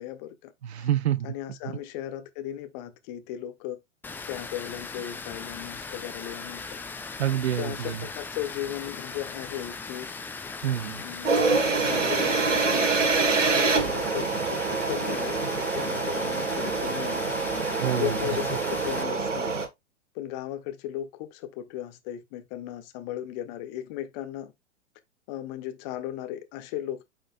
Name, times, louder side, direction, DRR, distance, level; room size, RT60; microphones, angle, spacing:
voice 1, 0.0-0.5 0.8-0.9 1.2-3.8 4.2-6.8 7.6-10.1 11.0-17.2 17.5-19.5 20.1-24.5 25.3-27.0, left 12 dB, 35° left, 1.1 m, -36 dB
voice 2, 0.6-1.3 7.2-8.0 10.6-11.0 17.8-18.1, right 11 dB, 60° right, 0.6 m, -27 dB
Water, 4.0-19.0, left 4 dB, 5° left, 0.6 m, -39 dB
sound 1, 11.2-19.7, right 4 dB, 75° right, 1.4 m, -26 dB
8.5 x 5.2 x 2.3 m
figure-of-eight pair, 100°, 37 cm